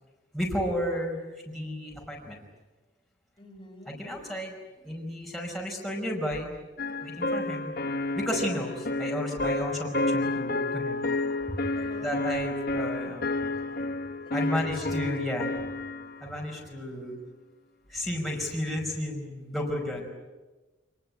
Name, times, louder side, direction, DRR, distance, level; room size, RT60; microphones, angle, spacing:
voice 1, 0.3-2.4 3.9-6.5 6.9-7.7 8.1-11.0 11.5-11.6 12.0-13.3 14.3-15.5 16.2-17.1 17.9-20.0, equal, ahead, -2 dB, 5.1 m, -32 dB
voice 2, 3.4-4.0 11.7-12.2 14.2-14.6 14.9-15.6 19.9-20.0, left 1 dB, 25° left, 1 dB, 4.6 m, -49 dB
sound 1, 6.8-16.3, left 2 dB, 50° left, 1.2 m, -30 dB
27.5 x 20.0 x 9.7 m, 1.2 s
head